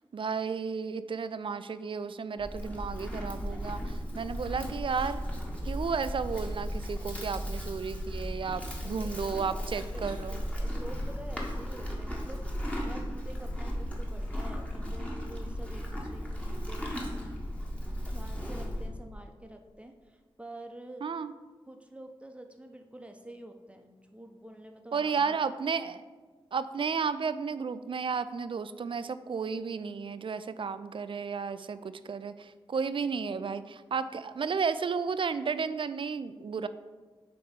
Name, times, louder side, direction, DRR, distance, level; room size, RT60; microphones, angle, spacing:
voice 1, 0.1-5.3 5.6-10.4 21.0-21.3 24.9-26.0 26.5-31.8 32.0-36.7, right 5 dB, 60° right, 12 dB, 0.4 m, -33 dB
Livestock farm animals working animals, 2.4-18.9, equal, 10° left, 1.4 m, -35 dB
voice 2, 8.8-17.0 18.1-21.0 21.6-25.4, right 1 dB, 10° right, 4 dB, 0.8 m, -48 dB
7.9 x 3.0 x 5.1 m, 1.4 s
cardioid pair, 55°, 10 cm